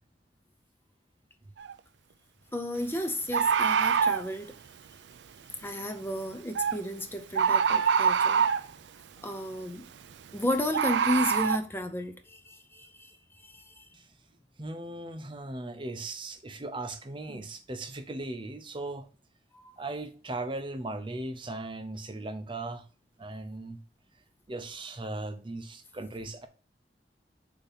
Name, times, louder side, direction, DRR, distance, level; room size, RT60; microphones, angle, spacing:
Bird, 1.6-1.7 3.3-4.3 6.6-6.8 7.4-8.7 10.7-11.6, right 7 dB, 80° right, 0.4 m, -24 dB
voice 1, 2.5-4.5 5.6-8.4 9.2-9.8 10.3-13.9 19.5-19.7, left 1 dB, 15° left, 0.6 m, -33 dB
voice 2, 14.6-19.1 19.8-22.8 23.2-23.8 24.5-26.5, right 2 dB, 30° right, 0.7 m, -38 dB
6.8 x 2.9 x 5.7 m
head